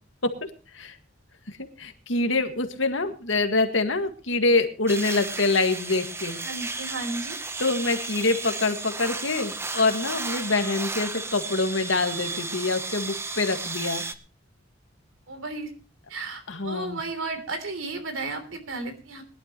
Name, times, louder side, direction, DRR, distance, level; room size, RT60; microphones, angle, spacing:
voice 1, 1.5-6.4 7.6-14.0 16.5-17.0, left 3 dB, 75° left, 6 dB, 1.9 m, -25 dB
sound 1, 4.9-14.1, right 3 dB, 15° right, 0.8 m, -33 dB
voice 2, 6.3-7.4 15.3-15.7 16.1-19.2, right 3 dB, 90° right, 8 dB, 3.3 m, -34 dB
21.0 x 12.0 x 3.0 m, 0.34 s
head